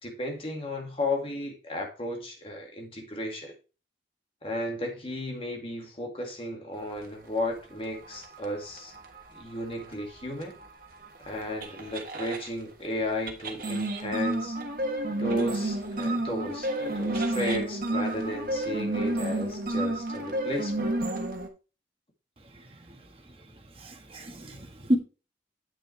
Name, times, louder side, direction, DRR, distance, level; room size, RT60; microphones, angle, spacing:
voice 1, 0.0-3.5 4.4-8.9 9.3-10.5 11.2-14.6 15.2-20.9, left 1 dB, 30° left, 1 dB, 2.2 m, -34 dB
sound 1, 7.9-12.5 13.3-21.5, right 1 dB, 50° right, 1.4 m, -30 dB
voice 2, 23.8-25.0, equal, 30° right, 3 dB, 1.6 m, -29 dB
9.1 x 6.3 x 3.3 m, 0.32 s
head